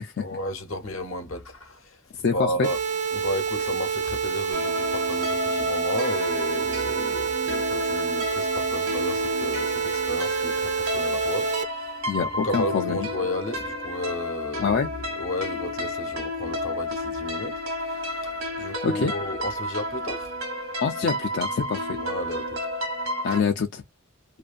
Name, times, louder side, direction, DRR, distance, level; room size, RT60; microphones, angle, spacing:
voice 1, 0.2-2.8 3.1-14.9 15.2-20.3 21.9-22.7, left 1 dB, 70° left, 0.9 m, -33 dB
voice 2, 2.2-2.7 12.1-13.1 14.6-14.9 18.8-19.1 20.8-21.9 23.2-23.8, left 5 dB, 55° left, 0.4 m, -25 dB
sound 1, 2.6-11.6, right 6 dB, 35° right, 0.3 m, -28 dB
sound 2, 4.5-23.4, left 1 dB, 80° right, 1.1 m, -31 dB
2.6 x 2.5 x 2.3 m
head